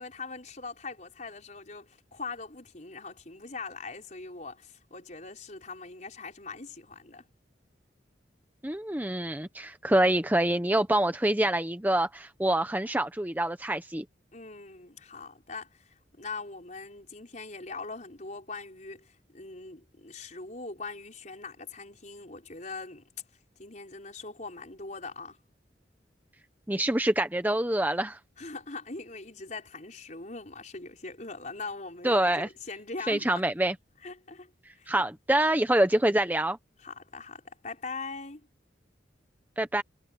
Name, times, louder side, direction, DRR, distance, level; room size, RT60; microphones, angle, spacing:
voice 1, 0.0-7.2 14.3-23.1 23.6-25.4 28.4-33.4 34.0-35.0 36.8-38.5, left 3 dB, 40° left, 5.1 m, -41 dB
voice 2, 8.6-14.0 26.7-28.2 32.0-32.5 33.1-33.7 34.9-36.6 39.6-39.8, right 1 dB, 10° right, 0.9 m, -26 dB
head